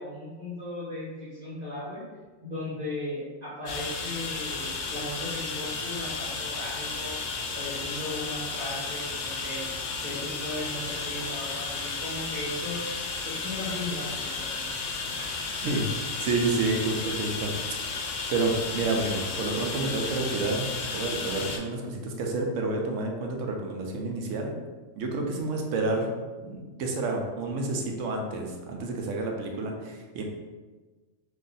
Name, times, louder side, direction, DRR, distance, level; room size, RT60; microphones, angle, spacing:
voice 1, 0.0-2.0 2.4-7.2 7.5-9.6 10.0-12.8 13.2-14.7, left 1 dB, 35° right, -10 dB, 1.1 m, -37 dB
sound 1, 3.7-21.6, left 4 dB, 85° left, 0.9 m, -33 dB
voice 2, 16.2-17.5 17.8-24.5 25.0-26.1 26.4-30.2, right 3 dB, 85° right, 1 dB, 1.0 m, -29 dB
2.9 x 2.6 x 3.9 m, 1.3 s
omnidirectional pair, 1.3 m